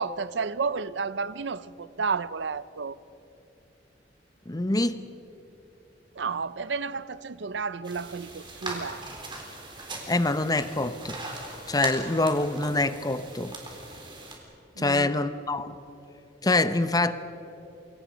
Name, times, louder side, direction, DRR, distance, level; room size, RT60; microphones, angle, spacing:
voice 1, 0.0-3.0 6.2-9.0 14.8-15.2, right 5 dB, 70° right, 0.6 m, -31 dB
voice 2, 4.5-5.0 10.1-11.2 11.7-13.5 14.8-15.7 16.4-17.1, left 2 dB, 20° left, 0.8 m, -25 dB
sound 1, 7.8-14.4, right 2 dB, 25° right, 3.9 m, -40 dB
28.0 x 23.0 x 5.2 m
head